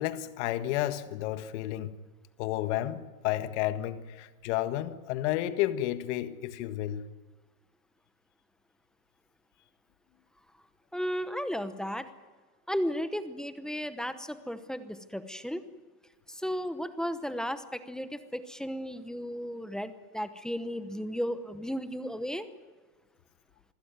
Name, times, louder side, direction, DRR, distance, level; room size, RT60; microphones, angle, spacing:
voice 1, 0.0-1.9 2.4-7.0, left 13 dB, 45° left, 1.7 m, -31 dB
voice 2, 10.9-12.1 12.7-15.6 16.3-22.5, equal, ahead, 0.9 m, -34 dB
25.5 x 16.0 x 9.4 m
supercardioid pair, 145°, 46 cm